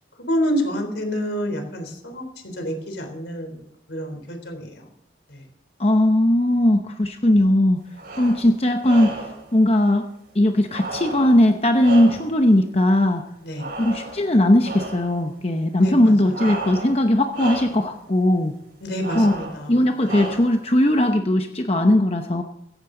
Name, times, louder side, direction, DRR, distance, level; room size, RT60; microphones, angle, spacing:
voice 1, 0.3-2.2 2.6-3.5 3.9-4.7 13.4-13.7 15.8-16.1 18.8-19.7, equal, 70° left, 5 dB, 3.6 m, -27 dB
voice 2, 5.8-7.8 8.2-9.1 9.5-10.0 10.3-13.2 13.8-18.5 19.1-19.3 19.7-22.4, left 1 dB, 30° left, 5 dB, 0.9 m, -18 dB
sound 1, 7.9-8.5 8.8-9.4 10.7-12.5 13.6-14.3 14.6-15.1 16.3-17.0 17.3-17.9 19.0-19.6 20.0-20.6, right 2 dB, 60° right, 6.3 m, -33 dB
16.5 x 15.5 x 3.9 m, 0.78 s
head